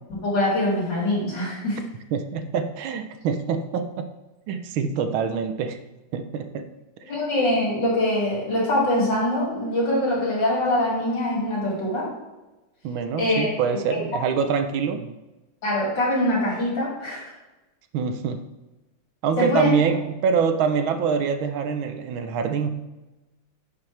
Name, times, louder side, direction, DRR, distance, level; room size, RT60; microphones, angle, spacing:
voice 1, 0.1-1.8 7.1-12.1 13.2-13.5 13.8-14.0 15.6-17.3 19.4-19.7, left 1 dB, 60° left, -4 dB, 3.0 m, -23 dB
voice 2, 2.1-4.1 4.5-5.8 6.1-6.7 12.8-15.1 17.9-18.4 19.2-22.8, right 6 dB, 75° right, 8 dB, 1.4 m, -25 dB
11.0 x 6.1 x 3.3 m, 1.1 s
omnidirectional pair, 2.3 m